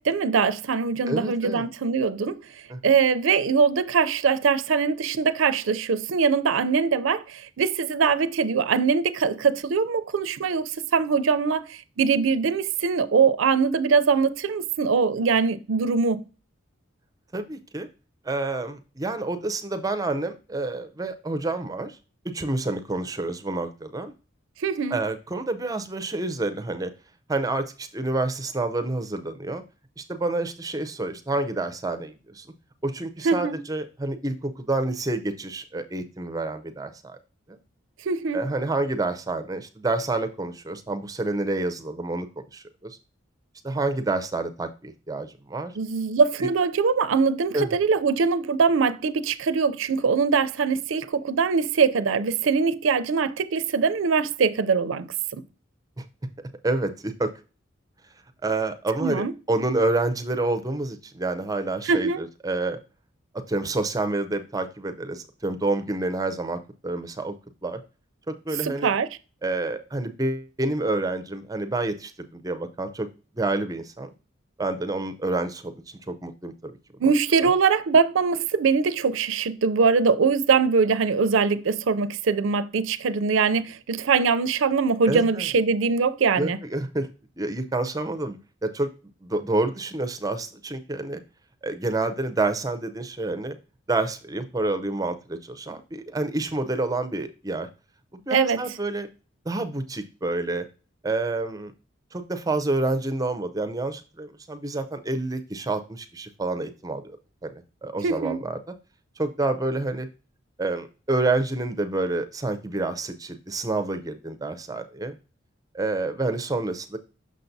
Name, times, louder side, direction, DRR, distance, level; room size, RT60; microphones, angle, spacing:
voice 1, 0.0-2.4 2.8-16.2 24.6-25.0 33.2-33.6 38.1-38.4 45.8-55.1 59.0-59.3 61.9-62.2 68.6-69.1 77.0-86.6 98.3-98.6 108.0-108.4, right 5 dB, 70° right, 0.4 m, -22 dB
voice 2, 1.1-1.6 2.7-2.8 17.3-17.9 18.2-22.0 22.2-24.1 24.9-26.9 27.3-29.6 30.0-32.5 32.8-37.2 37.5-37.6 38.3-42.3 42.5-43.0 43.6-45.7 46.4-46.5 47.5-47.8 56.0-56.1 56.6-57.3 58.4-62.8 63.5-67.3 67.6-67.8 68.3-69.0 69.4-73.1 73.4-74.1 74.6-76.5 77.0-77.1 85.1-85.5 86.4-87.1 87.4-88.9 89.2-91.2 91.6-93.6 93.9-97.7 98.1-99.1 99.5-100.7 101.0-101.7 102.1-107.2 107.4-107.5 107.8-108.6 109.2-110.1 110.6-115.2 115.7-117.0, right 2 dB, 15° right, 0.5 m, -28 dB
6.4 x 5.7 x 2.6 m
head